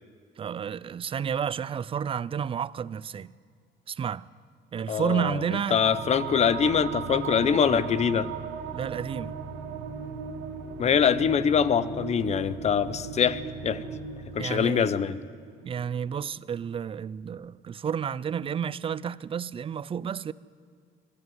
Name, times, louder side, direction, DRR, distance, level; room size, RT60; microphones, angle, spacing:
voice 1, 0.4-3.3 3.9-4.3 4.7-6.0 8.7-9.4 14.4-14.9 15.6-20.3, right 8 dB, 30° right, 0.5 m, -31 dB
voice 2, 4.9-5.4 5.7-8.3 10.8-13.8 14.3-15.2, left 7 dB, 40° left, 0.8 m, -24 dB
sound 1, 5.4-16.3, right 6 dB, 90° right, 2.1 m, -38 dB
21.0 x 13.5 x 9.4 m
cardioid pair, 110°, 17 cm